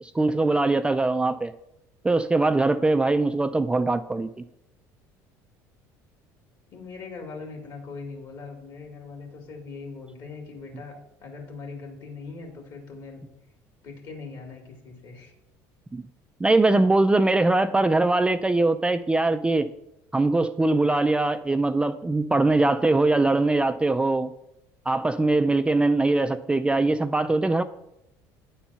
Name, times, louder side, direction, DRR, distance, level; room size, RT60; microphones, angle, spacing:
voice 1, 0.0-1.5 2.0-4.3 15.9-16.0 16.4-19.7 20.1-24.3 24.9-27.6, right 2 dB, 10° right, 9 dB, 0.3 m, -22 dB
voice 2, 6.7-13.2 13.8-15.3, left 4 dB, 55° left, 2 dB, 2.4 m, -41 dB
9.0 x 4.3 x 5.6 m, 0.85 s
supercardioid pair, 90°, 8 cm